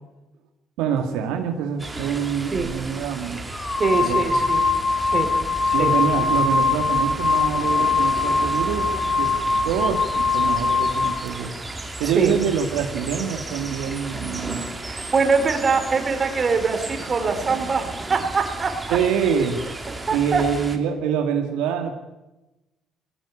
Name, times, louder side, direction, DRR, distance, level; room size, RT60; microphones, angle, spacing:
voice 1, 0.8-3.5 3.9-4.4 5.4-8.9 9.2-9.3 9.6-11.5 12.0-14.7 18.9-19.6 20.1-22.0, right 7 dB, 85° right, 4 dB, 2.0 m, -25 dB
sound 1, 1.8-20.8, right 2 dB, 15° right, 2.9 m, -34 dB
sound 2, 2.5-2.7 3.5-11.2, left 4 dB, 20° left, 3.5 m, -22 dB
voice 2, 3.8-4.6 5.0-5.3 5.6-6.3 12.0-12.3 14.8-19.0 19.9-20.4, right 4 dB, 35° right, 7 dB, 3.9 m, -23 dB
19.5 x 16.5 x 8.6 m, 1.0 s
supercardioid pair, 85°, 0 cm